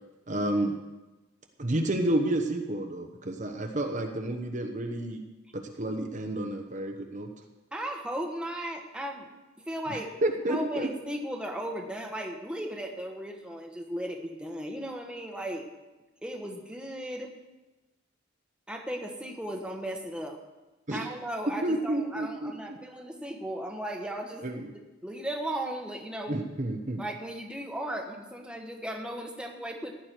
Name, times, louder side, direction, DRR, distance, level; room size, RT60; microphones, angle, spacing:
voice 1, 0.3-0.8 1.6-5.2 5.5-7.3 9.9-10.9 20.9-21.1 21.6-22.8 24.4-24.7 26.3-27.0, right 1 dB, 40° right, 4 dB, 1.1 m, -30 dB
voice 2, 7.7-9.3 9.7-10.1 10.5-15.6 16.2-17.3 18.7-20.4 20.9-24.5 25.0-26.4 27.0-29.9, right 1 dB, 5° right, 1 dB, 1.4 m, -36 dB
16.0 x 11.0 x 4.6 m, 1.1 s
head